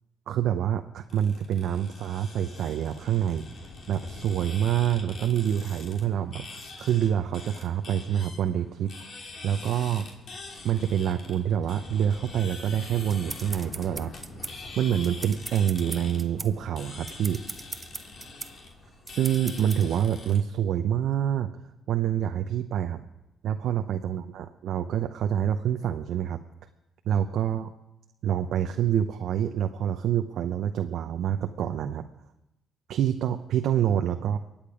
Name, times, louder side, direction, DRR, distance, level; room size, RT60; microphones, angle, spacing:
voice 1, 0.3-8.9 9.4-10.1 10.6-14.1 14.8-17.4 19.1-21.5 21.9-23.0 23.4-26.4 27.1-27.7 28.2-32.1 32.9-34.4, right 9 dB, 75° right, 6 dB, 0.7 m, -27 dB
sound 1, 1.1-20.4, left 3 dB, 60° left, 3.0 m, -44 dB
sound 2, 12.7-19.9, right 3 dB, 25° right, 0.9 m, -40 dB
23.5 x 8.8 x 5.0 m, 0.90 s
supercardioid pair, 65°, 0 cm